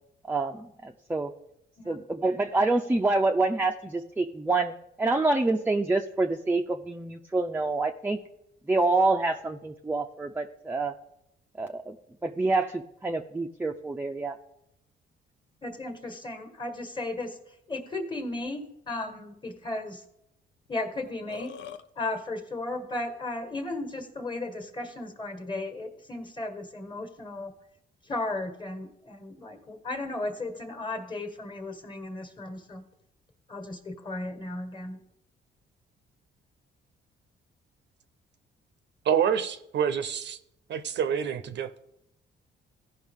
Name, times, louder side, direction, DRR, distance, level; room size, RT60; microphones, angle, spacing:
voice 1, 0.3-1.3 1.9-8.2 8.7-10.9 11.6-12.0 12.2-14.4, right 2 dB, 10° right, 0.5 m, -27 dB
voice 2, 15.6-17.4 17.7-20.0 20.7-21.5 22.0-27.5 28.1-32.8 33.5-35.0, left 2 dB, 25° left, 1.5 m, -35 dB
Burping eructation, 20.7-20.8 21.0-21.8, left 9 dB, 65° left, 0.6 m, -42 dB
voice 3, 39.0-40.4 40.7-41.8, right 8 dB, 60° right, 0.7 m, -27 dB
15.5 x 5.5 x 3.6 m
cardioid pair, 90°, 20 cm